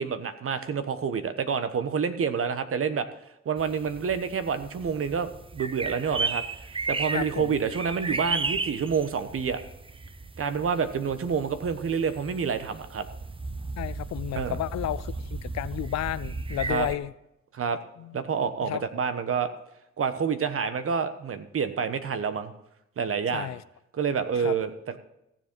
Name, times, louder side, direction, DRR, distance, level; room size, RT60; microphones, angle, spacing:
voice 1, 0.0-3.1 3.4-6.4 6.9-9.6 10.4-13.1 14.3-14.6 16.7-16.9 17.5-17.8 18.1-19.5 20.0-22.5 23.0-23.5 23.9-25.0, right 6 dB, 45° right, 1.2 m, -28 dB
sound 1, 3.6-17.0, right 3 dB, 20° right, 0.6 m, -35 dB
voice 2, 7.1-7.6 13.8-17.1 18.0-18.2 18.6-18.8 23.3-23.6 24.4-24.5, left 13 dB, 60° left, 0.5 m, -32 dB
15.0 x 7.4 x 4.6 m
cardioid pair, 90°, 30 cm